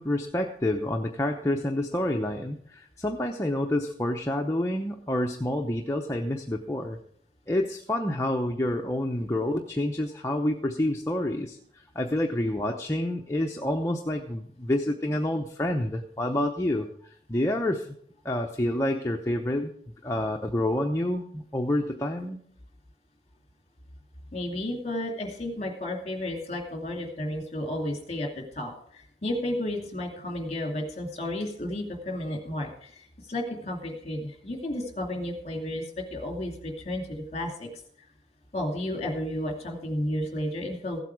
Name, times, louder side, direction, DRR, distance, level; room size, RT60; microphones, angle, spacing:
voice 1, 0.0-7.0 7.5-11.6 11.9-17.9 18.2-19.7 20.0-22.4, left 1 dB, 15° left, 2 dB, 0.7 m, -28 dB
voice 2, 24.3-37.7 38.5-41.0, left 1 dB, 35° left, 2 dB, 2.6 m, -32 dB
15.5 x 8.2 x 4.8 m, 0.64 s
head